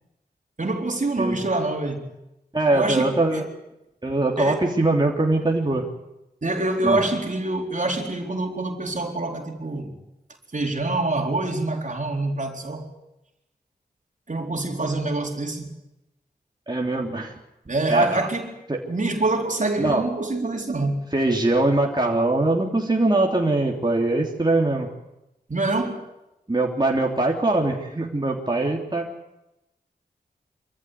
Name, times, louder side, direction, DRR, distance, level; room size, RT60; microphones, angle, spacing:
voice 1, 0.6-2.1 2.7-3.5 4.4-4.6 6.4-9.9 10.5-12.9 14.3-15.7 17.7-18.5 18.9-21.1 25.5-26.0, right 2 dB, 50° right, 2 dB, 4.2 m, -25 dB
voice 2, 2.5-3.4 4.0-5.8 6.8-7.0 16.7-17.3 17.9-18.3 18.7-18.8 19.8-20.0 21.1-24.9 26.5-29.1, right 2 dB, 25° right, -1 dB, 3.3 m, -22 dB
25.5 x 15.0 x 9.5 m, 0.94 s
cardioid pair, 45°, 17 cm